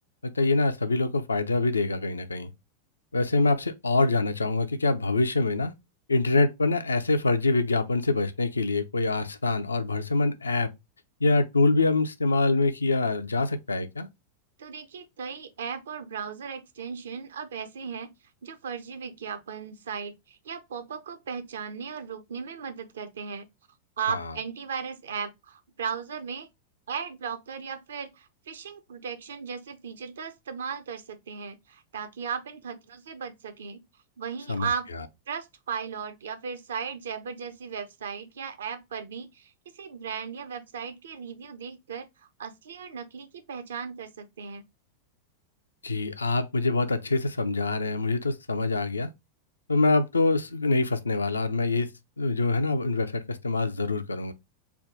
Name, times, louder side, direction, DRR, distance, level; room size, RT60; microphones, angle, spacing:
voice 1, 0.2-2.5 3.1-5.7 6.1-10.7 11.2-14.1 24.1-24.2 34.5-34.7 45.8-49.1 49.7-51.9 52.2-54.3, left 3 dB, 75° left, 0.4 m, -25 dB
voice 2, 14.6-18.1 18.4-23.5 24.0-26.5 26.9-33.8 34.2-34.9 35.3-44.6, right 6 dB, 65° right, 0.6 m, -36 dB
3.4 x 2.2 x 3.8 m
figure-of-eight pair, 90°, 0 cm